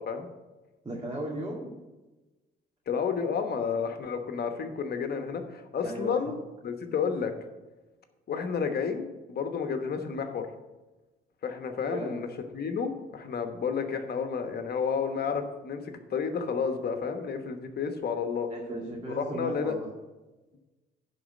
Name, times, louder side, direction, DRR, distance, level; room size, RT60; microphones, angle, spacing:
voice 1, 0.8-1.7 5.8-6.2 11.9-12.2 18.5-19.9, right 1 dB, 20° right, -4 dB, 2.1 m, -36 dB
voice 2, 2.9-6.3 6.6-7.3 8.3-10.5 11.4-12.3 12.5-15.8 16.1-18.5 19.1-19.8, left 6 dB, 55° left, 6 dB, 1.2 m, -31 dB
10.5 x 4.1 x 7.6 m, 1.1 s
cardioid pair, 90°, 20 cm